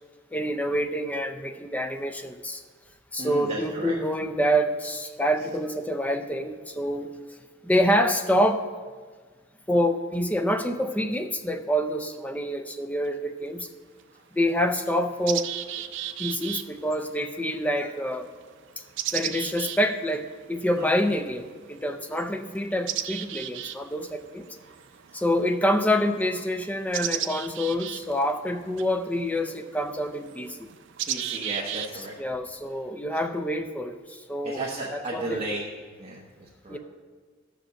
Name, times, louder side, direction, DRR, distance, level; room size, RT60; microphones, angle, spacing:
voice 1, 0.3-2.6 3.1-7.1 7.6-8.7 9.7-13.7 14.3-15.5 16.2-18.3 19.1-24.5 25.1-30.7 31.9-34.6 34.9-35.6 36.7-36.8, equal, 10° left, 7 dB, 0.5 m, -27 dB
voice 2, 3.2-3.9 20.8-21.0 31.0-32.1 34.4-35.7 36.0-36.8, right 2 dB, 30° right, -3 dB, 1.0 m, -34 dB
sound 1, 13.1-13.2 14.0-14.1 14.5-32.2, right 11 dB, 65° right, 0.4 m, -36 dB
13.0 x 5.1 x 6.4 m, 1.5 s
head